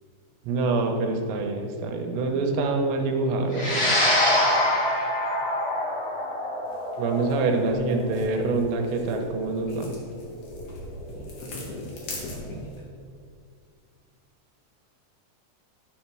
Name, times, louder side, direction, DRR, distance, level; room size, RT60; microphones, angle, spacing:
voice 1, 0.5-4.0 7.0-9.9, right 3 dB, 85° right, 3 dB, 3.1 m, -26 dB
sound 1, 3.5-12.1, left 1 dB, 40° left, 1.5 m, -26 dB
sound 2, 6.6-12.8, left 2 dB, 60° left, 2.6 m, -42 dB
voice 2, 9.5-10.1 11.1-12.9, left 1 dB, 85° left, 0 dB, 1.8 m, -41 dB
12.5 x 4.3 x 6.1 m, 2.2 s
omnidirectional pair, 5.0 m